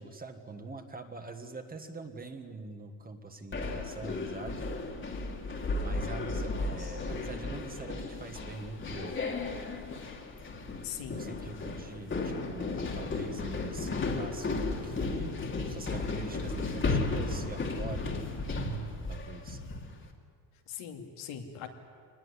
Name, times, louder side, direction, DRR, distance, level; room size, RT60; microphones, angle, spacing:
voice 1, 0.0-4.7 5.8-9.4 11.1-18.1 19.1-19.6, right 3 dB, 20° right, 6 dB, 1.6 m, -44 dB
sound 1, 3.5-20.0, left 3 dB, 25° left, 2.3 m, -34 dB
voice 2, 10.8-11.2 20.7-21.7, left 8 dB, 80° left, 4 dB, 2.7 m, -40 dB
24.0 x 20.0 x 9.8 m, 2.2 s
cardioid pair, 155°, 48 cm